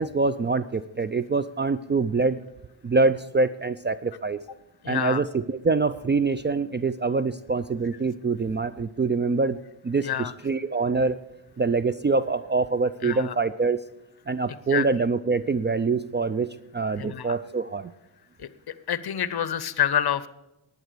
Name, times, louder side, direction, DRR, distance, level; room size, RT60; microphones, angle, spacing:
voice 1, 0.0-2.4 2.8-4.4 4.9-9.6 9.8-11.2 11.6-13.8 14.3-16.5 16.7-17.9, right 4 dB, 25° right, 15 dB, 0.4 m, -25 dB
voice 2, 4.8-5.2 10.0-10.3 13.0-13.3 14.7-14.9 17.0-17.4 18.4-18.5 18.9-20.3, left 9 dB, 50° left, 16 dB, 0.8 m, -27 dB
11.0 x 9.2 x 6.7 m, 0.90 s
cardioid pair, 80°, 48 cm